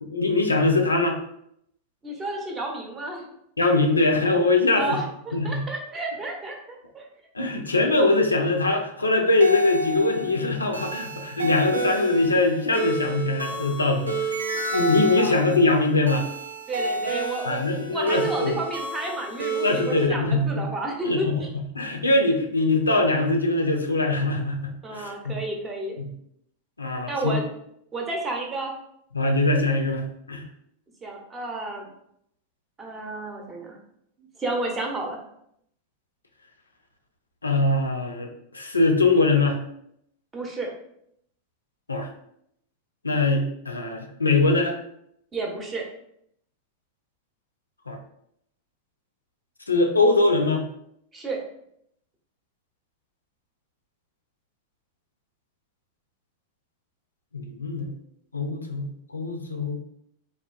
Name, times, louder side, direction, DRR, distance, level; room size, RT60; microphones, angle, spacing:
voice 1, 0.0-1.2 3.6-5.0 5.3-5.6 7.3-14.3 14.7-16.3 17.5-18.6 19.6-20.7 21.0-21.3 21.7-25.4 26.0-26.1 26.8-27.4 29.1-30.4 37.4-38.3 38.5-39.6 41.9-42.1 43.0-44.8 47.9-48.0 49.7-50.6 57.3-57.9 58.3-59.8, left 2 dB, 80° left, 3 dB, 0.4 m, -22 dB
voice 2, 2.0-3.3 4.7-6.6 6.9-7.1 15.2-15.4 16.7-21.5 24.8-26.0 27.0-27.4 27.9-28.7 31.0-31.9 32.8-33.8 34.2-35.2 40.3-40.7 45.3-45.8 51.1-51.4, right 2 dB, 20° right, 1 dB, 0.7 m, -31 dB
sound 1, 9.4-20.1, right 3 dB, 75° right, 0.4 m, -30 dB
3.5 x 2.4 x 2.3 m, 0.72 s
figure-of-eight pair, 90°, 0 cm